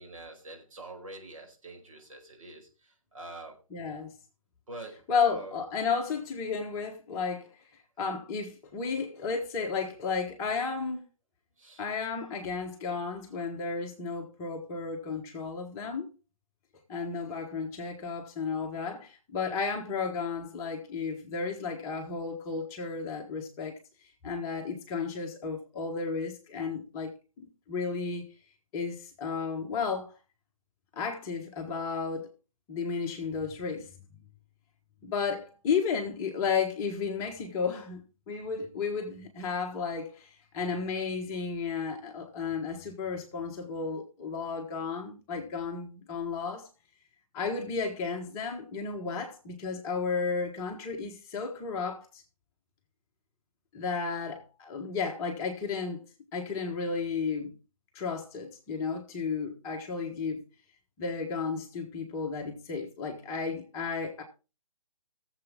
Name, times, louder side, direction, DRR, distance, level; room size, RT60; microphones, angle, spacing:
voice 1, 0.0-3.6 4.7-5.6 11.6-12.3, right 2 dB, 65° right, 5.1 m, -45 dB
voice 2, 3.7-4.1 4.9-7.5 8.0-11.0 11.8-16.1 16.9-23.7 24.2-27.1 27.7-28.2 28.7-30.1 31.0-32.3 32.7-33.9 35.0-38.0 38.3-46.7 47.3-52.2 53.7-56.0 56.3-57.6 57.9-60.4 61.0-64.2, left 5 dB, 15° left, 1.4 m, -33 dB
18.0 x 7.5 x 3.6 m
figure-of-eight pair, 150°, 18 cm